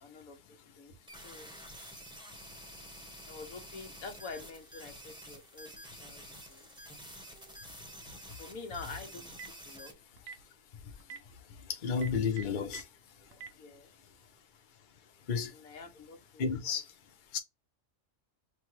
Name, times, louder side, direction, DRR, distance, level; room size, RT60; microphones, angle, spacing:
voice 1, 0.0-1.5 3.3-6.7 8.2-9.3 9.6-10.0 13.3-13.9 15.5-16.8, left 4 dB, 85° left, 1.4 m, -47 dB
sound 1, 1.1-9.9, equal, 5° right, 1.0 m, -49 dB
Telephone, 9.1-9.6 10.2-10.4 11.0-11.2 11.9-12.8 13.3-13.5, right 6 dB, 80° right, 1.2 m, -44 dB
voice 2, 11.8-12.8 15.3-15.5 16.4-16.8 17.3-17.4, left 6 dB, 40° left, 0.9 m, -31 dB
6.1 x 2.3 x 3.1 m
omnidirectional pair, 1.4 m